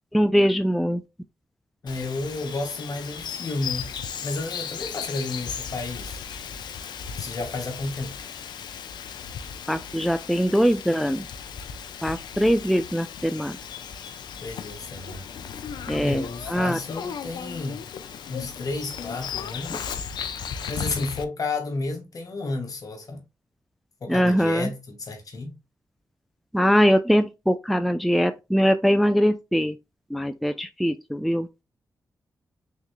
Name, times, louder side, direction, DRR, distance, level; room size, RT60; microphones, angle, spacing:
voice 1, 0.1-1.0 9.7-11.3 12.0-13.6 15.9-16.2 16.5-16.8 24.1-24.7 26.5-29.8 30.1-31.5, equal, ahead, 0.3 m, -22 dB
voice 2, 1.8-6.2 7.1-8.2 14.4-15.3 16.0-17.9 18.3-19.9 20.7-23.2 24.0-25.6, left 3 dB, 55° left, 1.3 m, -32 dB
Bird vocalization bird call bird song, 1.9-21.2, left 7 dB, 90° left, 0.4 m, -36 dB
3.7 x 3.1 x 3.0 m
cardioid pair, 75°, 7 cm